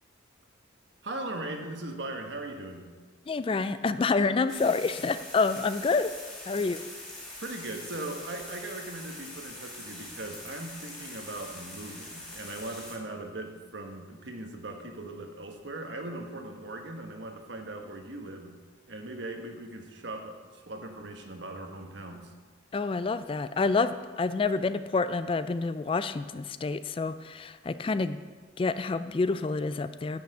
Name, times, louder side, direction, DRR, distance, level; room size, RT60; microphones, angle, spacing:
voice 1, 1.0-2.9 7.4-18.6 18.9-22.3, right 2 dB, 70° right, 3 dB, 1.3 m, -39 dB
voice 2, 3.3-6.1 6.5-6.8 22.7-28.2 28.6-30.2, left 4 dB, 30° left, 12 dB, 0.3 m, -28 dB
sound 1, 4.5-12.9, left 1 dB, 5° left, 2.6 m, -43 dB
10.0 x 5.8 x 7.7 m, 1.4 s
head